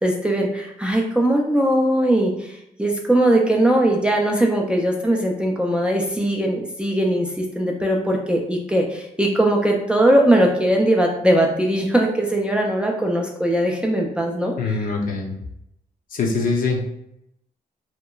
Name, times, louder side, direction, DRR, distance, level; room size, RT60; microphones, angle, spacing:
voice 1, 0.0-14.8, right 1 dB, 5° right, 0 dB, 0.3 m, -20 dB
voice 2, 14.6-15.3 16.1-16.9, left 3 dB, 60° left, 0 dB, 0.5 m, -23 dB
2.8 x 2.3 x 2.2 m, 0.79 s
wide cardioid pair, 135°, 16 cm